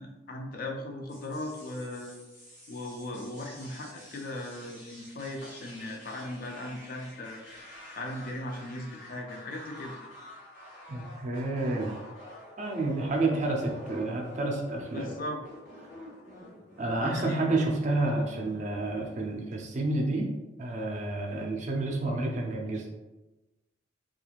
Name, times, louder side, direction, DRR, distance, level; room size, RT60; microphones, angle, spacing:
voice 1, 0.0-2.1 2.7-7.4 8.0-9.9 13.3-13.5 14.9-15.4 17.0-17.4, left 1 dB, 45° left, 2 dB, 0.4 m, -38 dB
strange beat, 1.1-19.5, left 1 dB, 65° left, 1.4 m, -49 dB
voice 2, 10.9-12.0 12.6-15.1 16.8-20.3 20.6-22.9, right 2 dB, 40° right, 1 dB, 0.4 m, -29 dB
3.0 x 2.3 x 2.4 m, 1.1 s
head